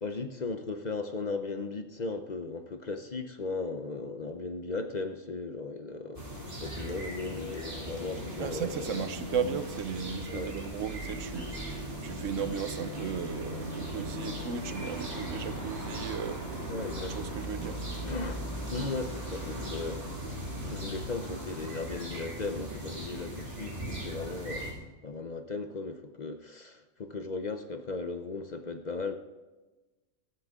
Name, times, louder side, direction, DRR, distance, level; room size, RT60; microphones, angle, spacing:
voice 1, 0.0-8.9 10.3-10.5 16.7-17.2 18.1-18.4 18.7-20.1 20.6-24.7 25.0-29.1, left 3 dB, 40° left, 7 dB, 0.7 m, -37 dB
sound 1, 6.1-24.7, right 1 dB, 45° right, 3.4 m, -38 dB
voice 2, 8.4-16.4 17.1-17.8, right 7 dB, 80° right, 12 dB, 1.1 m, -35 dB
14.5 x 13.5 x 3.6 m, 1.2 s
omnidirectional pair, 1.3 m